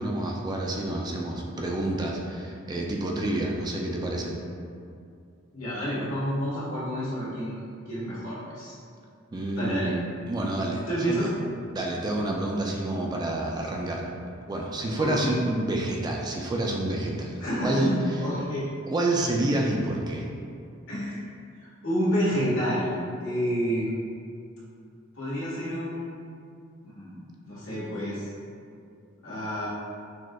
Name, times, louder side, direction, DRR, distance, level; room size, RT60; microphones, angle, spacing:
voice 1, 0.0-4.3 9.3-9.9 10.3-11.3 11.7-14.1 14.5-17.9 18.9-20.2, right 1 dB, 20° right, -1 dB, 0.3 m, -28 dB
voice 2, 5.5-8.8 9.5-9.9 10.9-11.3 15.0-15.3 17.4-18.6 20.9-21.2 21.8-23.9 25.1-26.2 26.8-28.3 29.2-29.7, equal, 85° left, -9 dB, 1.3 m, -29 dB
6.0 x 2.1 x 2.2 m, 2.4 s
head